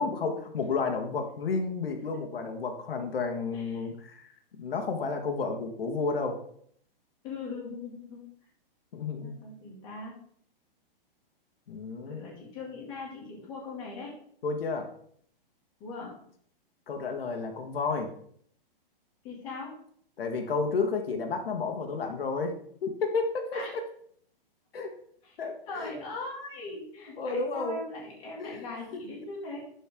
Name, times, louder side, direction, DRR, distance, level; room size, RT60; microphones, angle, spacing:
voice 1, 0.0-4.3 4.6-6.4 8.9-9.4 11.7-12.2 14.4-14.9 16.9-18.1 20.2-22.6 22.8-23.6 24.7-24.9 25.4-25.9 27.2-27.8 28.4-28.7, left 4 dB, 80° left, 4 dB, 1.5 m, -31 dB
voice 2, 3.5-3.9 7.2-8.3 9.1-10.2 12.1-14.1 15.8-16.2 19.2-19.7 23.5-23.7 25.2-25.4 25.7-29.6, left 3 dB, 15° left, -4 dB, 1.8 m, -40 dB
11.5 x 4.5 x 3.6 m, 0.62 s
hypercardioid pair, 180°, 29 cm